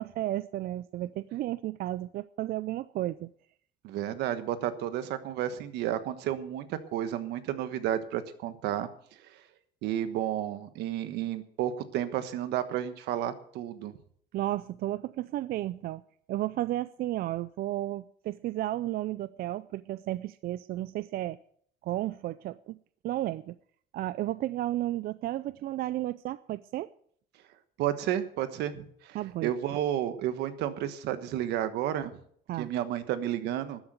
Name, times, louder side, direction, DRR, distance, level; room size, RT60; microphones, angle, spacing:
voice 1, 0.0-3.3 14.3-16.0 16.3-21.4 21.8-22.8 23.0-23.6 23.9-26.9 29.1-29.5 32.5-32.7, right 14 dB, 60° right, 16 dB, 0.4 m, -33 dB
voice 2, 3.8-8.9 9.8-13.9 27.8-29.2 29.4-32.1 32.6-33.8, right 11 dB, 85° right, 11 dB, 1.3 m, -31 dB
13.0 x 8.0 x 7.8 m, 0.62 s
cardioid pair, 110°, 17 cm